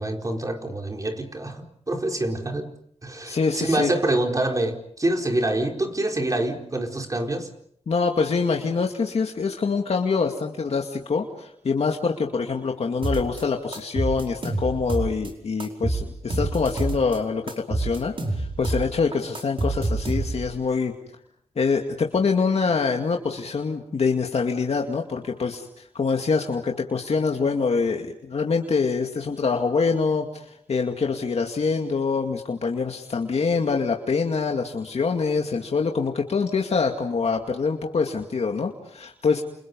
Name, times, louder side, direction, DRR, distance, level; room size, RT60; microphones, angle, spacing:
voice 1, 0.0-2.7 3.0-7.5, right 1 dB, 30° right, 3 dB, 4.6 m, -26 dB
voice 2, 3.3-3.9 7.9-20.9 21.6-39.4, left 4 dB, 70° left, 2 dB, 2.3 m, -25 dB
sound 1, 13.0-13.4 13.7-15.3 15.6-17.2 17.5-20.6, right 2 dB, 50° right, 5.0 m, -27 dB
29.5 x 29.5 x 5.5 m, 0.70 s
wide cardioid pair, 105°, 11 cm